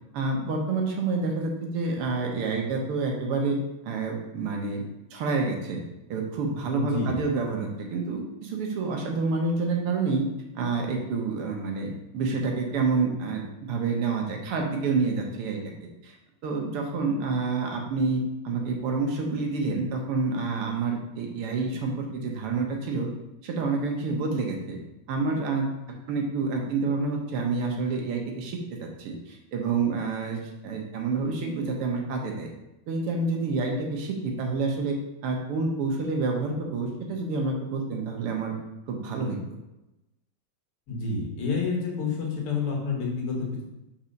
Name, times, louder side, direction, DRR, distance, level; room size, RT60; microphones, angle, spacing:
voice 1, 0.1-3.6 3.8-5.8 6.1-10.2 10.6-13.4 13.7-16.2 16.4-23.1 23.4-24.8 25.1-32.5 32.9-35.0 35.2-38.5 38.9-39.4, right 4 dB, 90° right, 1 dB, 2.0 m, -28 dB
voice 2, 6.7-7.2 40.9-43.6, left 4 dB, 90° left, -1 dB, 2.3 m, -29 dB
4.7 x 4.3 x 5.2 m, 0.95 s
omnidirectional pair, 2.4 m